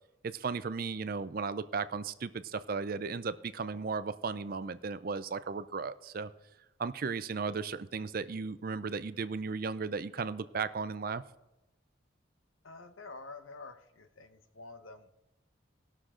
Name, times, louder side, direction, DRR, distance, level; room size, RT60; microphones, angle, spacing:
voice 1, 0.2-6.3 6.8-11.2, right 5 dB, 45° right, 13 dB, 0.4 m, -35 dB
voice 2, 12.6-15.1, left 3 dB, 80° left, 8 dB, 1.0 m, -48 dB
19.0 x 6.4 x 3.7 m, 0.96 s
head